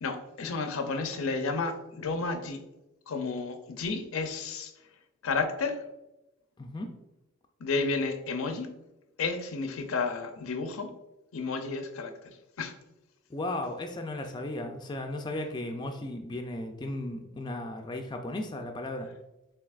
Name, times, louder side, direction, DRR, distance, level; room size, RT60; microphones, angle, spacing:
voice 1, 0.0-2.6 3.1-4.7 5.2-5.8 7.6-8.7 9.2-10.9 11.3-12.7, left 4 dB, 80° left, 7 dB, 0.5 m, -32 dB
voice 2, 13.3-19.1, left 1 dB, 20° left, 4 dB, 0.3 m, -35 dB
7.0 x 2.8 x 2.4 m, 0.97 s
head